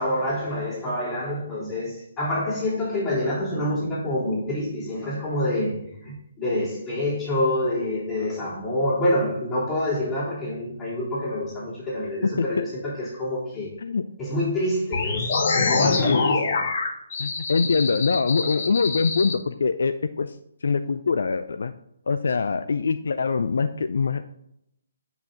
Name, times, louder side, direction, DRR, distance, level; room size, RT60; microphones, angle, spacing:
voice 1, 0.0-13.7 14.2-16.6, left 1 dB, 15° left, 3.5 m, -27 dB
sound 1, 14.9-19.3, left 4 dB, 45° left, 1.7 m, -25 dB
voice 2, 15.8-16.3 17.2-21.7 22.1-24.3, left 5 dB, 65° left, 0.5 m, -24 dB
8.9 x 5.9 x 3.9 m
figure-of-eight pair, 140°, 0 cm